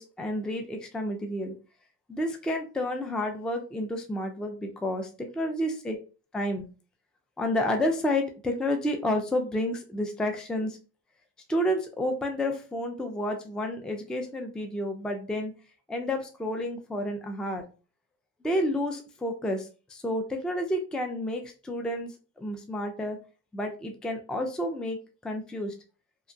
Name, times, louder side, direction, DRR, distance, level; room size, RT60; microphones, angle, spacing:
voice 1, 0.0-1.5 2.1-6.0 6.3-6.7 7.4-10.7 11.5-15.5 15.9-17.6 18.4-23.2 23.5-25.0 25.2-25.7, left 1 dB, ahead, 4 dB, 0.4 m, -30 dB
2.8 x 2.2 x 2.6 m, 0.35 s
cardioid pair, 75°, 40 cm